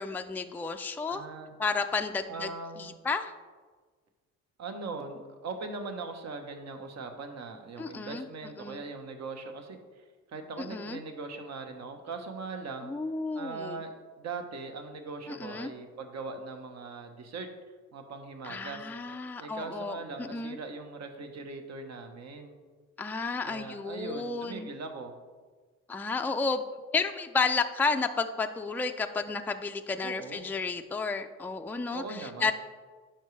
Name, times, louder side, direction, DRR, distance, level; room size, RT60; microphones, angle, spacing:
voice 1, 0.0-1.2 1.6-2.5 2.8-3.3 7.8-8.3 8.6-8.8 10.6-11.0 12.8-13.8 15.3-15.7 18.4-20.6 23.0-24.7 25.9-26.6 26.9-32.5, left 4 dB, 5° left, 6 dB, 0.4 m, -32 dB
voice 2, 1.1-1.5 2.3-3.0 4.6-12.9 13.3-17.5 17.9-18.9 19.4-22.6 23.4-25.1 30.0-30.5 31.9-32.5, right 4 dB, 60° right, 5 dB, 1.1 m, -40 dB
9.9 x 5.8 x 3.2 m, 1.4 s
cardioid pair, 90°, 30 cm